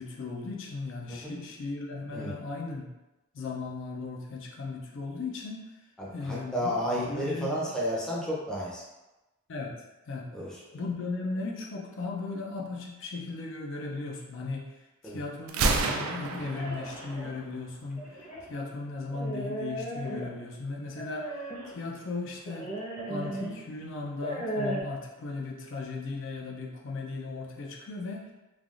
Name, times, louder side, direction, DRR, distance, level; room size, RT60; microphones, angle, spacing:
voice 1, 0.0-2.9 3.3-5.6 6.1-6.7 7.1-7.7 9.5-9.8 10.1-10.3 10.7-14.7 15.0-21.4 21.7-22.7 23.1-28.3, left 3 dB, 60° left, -1 dB, 0.4 m, -37 dB
voice 2, 6.0-8.8 10.3-10.8 15.0-15.2, equal, 5° left, -6 dB, 0.5 m, -32 dB
Gunshot gunfire, 15.5-17.5, right 3 dB, 85° right, 0.3 m, -29 dB
sound 1, 15.6-17.3 18.0-18.5 19.1-20.5 21.0-21.8 22.5-23.6 24.1-24.8, right 1 dB, 35° left, 0.8 m, -36 dB
3.3 x 2.3 x 2.4 m, 1.0 s
head